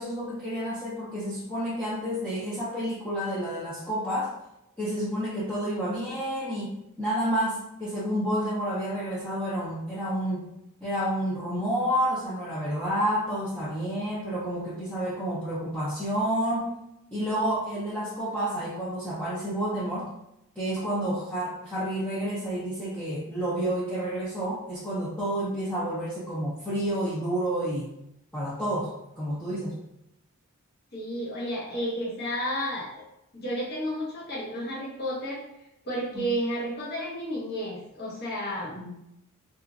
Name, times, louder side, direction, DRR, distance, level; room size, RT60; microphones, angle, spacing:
voice 1, 0.0-4.3 4.8-6.7 7.0-10.5 10.8-16.7 17.1-20.1 20.6-27.9 28.3-28.9 29.2-29.8 36.1-36.2 38.7-38.9, equal, 5° left, -10 dB, 0.5 m, -29 dB
voice 2, 30.9-33.0 33.3-35.4 35.8-38.8, equal, 45° left, -6 dB, 0.8 m, -32 dB
2.9 x 2.4 x 2.5 m, 0.84 s
head